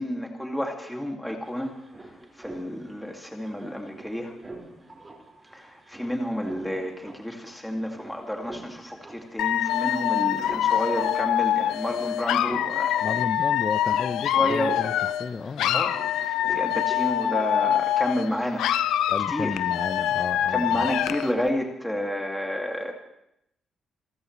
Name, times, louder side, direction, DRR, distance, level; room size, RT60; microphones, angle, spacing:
voice 1, 0.0-1.7 2.0-4.3 5.5-13.0 14.2-14.9 15.7-18.7 19.0-19.6 20.5-22.9, equal, 5° left, 1 dB, 2.5 m, -30 dB
sound 1, 0.9-1.0 1.2-17.9, right 2 dB, 25° right, 5.4 m, -46 dB
Dog / Alarm, 9.4-15.3 15.6-18.3 18.6-21.3, left 11 dB, 85° left, 0.6 m, -25 dB
voice 2, 13.0-14.9 15.2-15.9 19.1-20.9, left 4 dB, 35° left, 14 dB, 0.8 m, -33 dB
27.5 x 13.5 x 3.3 m, 0.80 s
cardioid pair, 90°, 0 cm